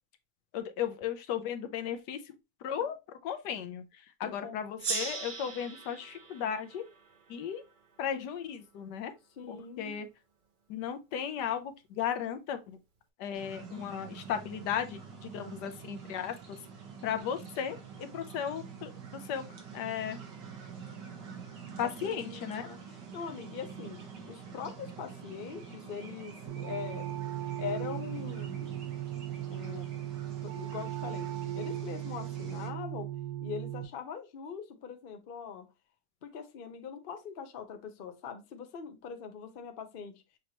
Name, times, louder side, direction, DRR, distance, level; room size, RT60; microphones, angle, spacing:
voice 1, 0.5-2.2 2.6-3.0 3.2-3.8 4.2-6.8 7.3-7.6 8.0-9.1 9.5-10.1 10.7-12.8 13.2-16.3 17.0-18.9 19.3-19.4 19.7-20.2 21.8-22.7, left 8 dB, 75° left, 1.3 m, -35 dB
voice 2, 4.2-4.8 9.4-10.0 21.8-22.8 23.1-24.0 24.3-27.2 27.6-29.0 29.5-29.9 30.4-33.1 33.4-35.7 36.2-40.2, left 6 dB, 50° left, 0.7 m, -42 dB
Gong, 4.8-7.9, right 4 dB, 50° right, 0.6 m, -39 dB
sound 1, 13.3-32.7, right 6 dB, 80° right, 1.9 m, -46 dB
sound 2, 26.5-33.8, right 12 dB, 65° right, 1.3 m, -37 dB
6.3 x 3.0 x 2.8 m
omnidirectional pair, 1.9 m